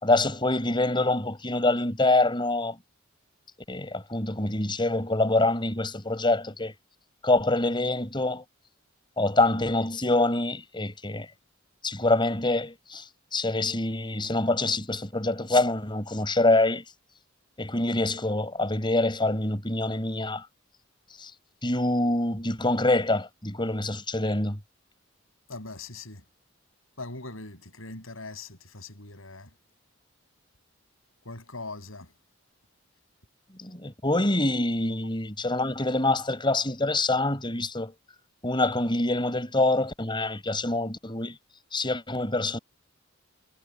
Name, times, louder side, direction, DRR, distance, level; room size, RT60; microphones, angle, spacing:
voice 1, 0.0-2.8 3.7-6.7 7.2-8.4 9.2-11.3 11.8-13.0 13.3-16.8 17.6-20.5 21.2-21.3 21.6-24.6 33.6-37.9 38.4-41.4 41.7-42.6, left 2 dB, 25° left, 5.3 m, -25 dB
voice 2, 25.5-26.2 27.0-28.5 28.7-29.5 31.3-32.1, left 3 dB, 80° left, 7.0 m, -40 dB
head